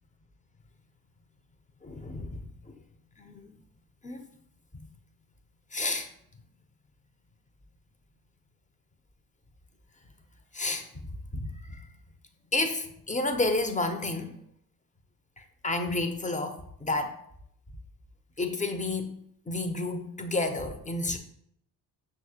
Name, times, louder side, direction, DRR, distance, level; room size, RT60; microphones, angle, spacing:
voice 1, 1.8-2.8 3.2-3.5 4.0-4.2 4.7-4.9 5.7-6.1 10.5-11.0 11.3-11.9 12.5-14.4 15.4-17.2 18.4-21.2, left 2 dB, 15° left, 7 dB, 0.5 m, -31 dB
5.8 x 2.4 x 2.8 m, 0.71 s
hypercardioid pair, 45°, 49 cm